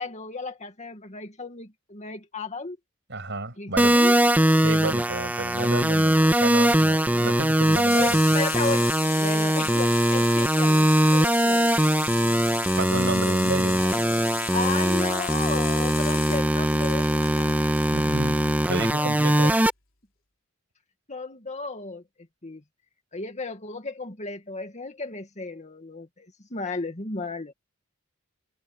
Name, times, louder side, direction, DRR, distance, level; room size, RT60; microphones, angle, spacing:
voice 1, 0.0-2.8 3.6-4.1 7.9-11.8 13.8-14.0 14.5-17.7 19.0-19.6 21.1-22.0 22.4-22.6 23.1-27.5, left 3 dB, 35° left, 2.3 m, -34 dB
voice 2, 3.1-3.9 4.6-8.2 12.7-13.9 17.9-19.5, right 2 dB, 60° right, 7.2 m, -31 dB
sound 1, 3.8-19.7, right 1 dB, 10° right, 1.8 m, -21 dB
Water tap faucet / Sink (filling or washing), 6.1-17.9 19.2-19.3, left 14 dB, 70° left, 3.8 m, -37 dB
head